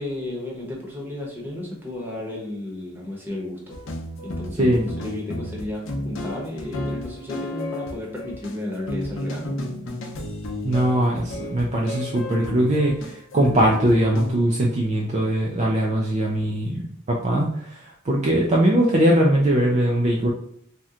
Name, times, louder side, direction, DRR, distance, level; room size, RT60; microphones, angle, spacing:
voice 1, 0.0-3.7 4.2-9.6, left 1 dB, 10° right, -3 dB, 0.9 m, -33 dB
sound 1, 3.7-14.3, left 1 dB, 65° left, 0.6 m, -32 dB
voice 2, 10.6-20.3, right 1 dB, 35° right, -3 dB, 0.4 m, -21 dB
2.8 x 2.2 x 3.6 m, 0.67 s
head